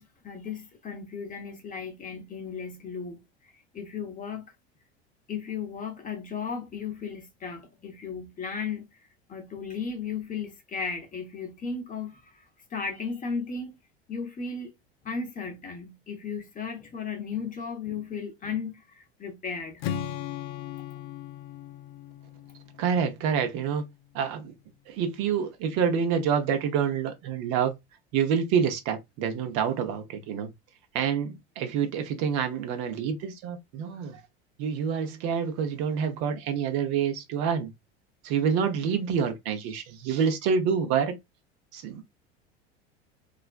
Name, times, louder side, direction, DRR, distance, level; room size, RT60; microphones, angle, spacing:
voice 1, 0.0-3.2 3.5-4.5 5.3-8.9 9.3-13.8 14.1-14.7 15.0-19.8, left 5 dB, 25° left, 0.7 m, -35 dB
Strum, 19.8-23.9, left 10 dB, 60° left, 0.4 m, -38 dB
voice 2, 22.8-23.8 24.1-24.5 24.9-27.7 28.1-30.5 30.9-34.2 34.6-37.7 38.2-41.2 41.7-42.0, right 7 dB, 60° right, 0.7 m, -27 dB
2.4 x 2.1 x 2.4 m
hypercardioid pair, 90°, 32 cm